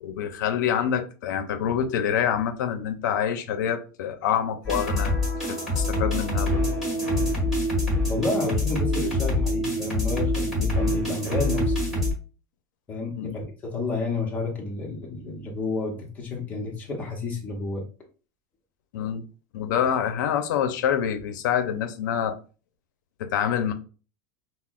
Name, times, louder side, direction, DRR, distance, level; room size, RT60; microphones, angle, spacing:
voice 1, 0.0-6.6 13.1-13.4 18.9-19.2 19.5-22.4 23.2-23.7, left 8 dB, 80° left, 0.5 m, -26 dB
sound 1, 4.6-12.1, left 1 dB, ahead, 1.5 m, -25 dB
voice 2, 8.1-11.7 12.9-17.8, left 3 dB, 15° left, 0.8 m, -30 dB
5.6 x 2.0 x 2.4 m
supercardioid pair, 180°, 10 cm